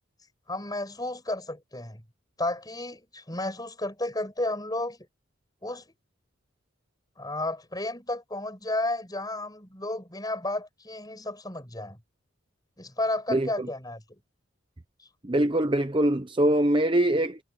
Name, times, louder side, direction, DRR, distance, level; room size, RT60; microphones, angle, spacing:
voice 1, 0.5-2.0 2.4-5.0 5.6-5.8 7.2-12.0 12.8-14.2, left 2 dB, 20° left, 7.5 m, -32 dB
voice 2, 13.3-13.7 15.2-17.4, right 1 dB, 25° right, 0.8 m, -23 dB
head